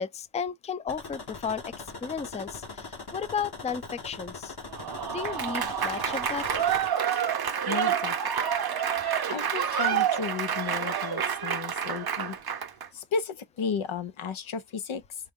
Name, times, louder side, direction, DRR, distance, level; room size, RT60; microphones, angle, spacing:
voice 1, 0.0-1.6 2.0-4.6 5.1-6.7, left 6 dB, 15° left, 0.3 m, -34 dB
sound 1, 0.9-6.9, left 3 dB, 55° left, 1.1 m, -41 dB
Applause / Crowd, 4.7-12.9, right 8 dB, 50° right, 0.6 m, -28 dB
voice 2, 7.6-8.2 9.3-12.4 12.9-15.0, left 5 dB, 85° left, 0.7 m, -33 dB
4.5 x 2.1 x 3.5 m
wide cardioid pair, 65°, 47 cm